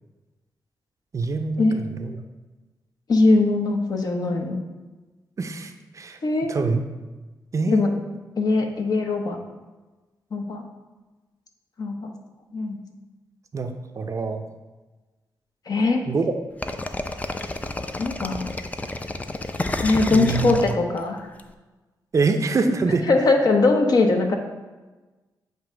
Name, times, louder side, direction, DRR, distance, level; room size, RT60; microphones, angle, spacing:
voice 1, 1.1-2.2 5.4-6.2 6.5-6.8 7.5-7.8 13.5-14.4 16.1-16.3 20.1-20.7 22.1-23.0, right 4 dB, 45° right, 7 dB, 0.5 m, -25 dB
voice 2, 3.1-4.6 6.2-6.5 7.7-7.9 8.4-9.4 10.3-10.6 11.8-12.1 12.5-12.8 15.7-16.0 18.0-18.4 19.8-21.2 23.1-24.4, left 3 dB, 55° left, 3 dB, 0.9 m, -21 dB
sound 1, 16.6-21.4, left 2 dB, 20° left, 0.4 m, -30 dB
7.8 x 2.7 x 5.0 m, 1.2 s
cardioid pair, 80°, 8 cm